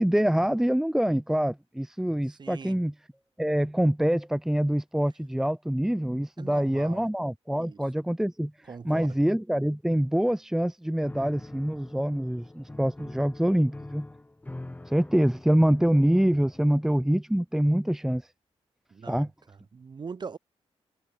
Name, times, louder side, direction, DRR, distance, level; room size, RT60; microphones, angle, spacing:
voice 1, 0.0-2.9 3.4-8.5 8.8-14.0 14.9-18.2 19.1-19.3, equal, 5° right, 1.0 m, -25 dB
voice 2, 2.3-2.8 6.4-7.1 7.5-7.8 8.7-9.2 18.9-20.4, right 5 dB, 40° right, 2.9 m, -42 dB
Piano, 11.0-16.9, left 2 dB, 15° left, 4.0 m, -44 dB
cardioid pair, 105°, 12 cm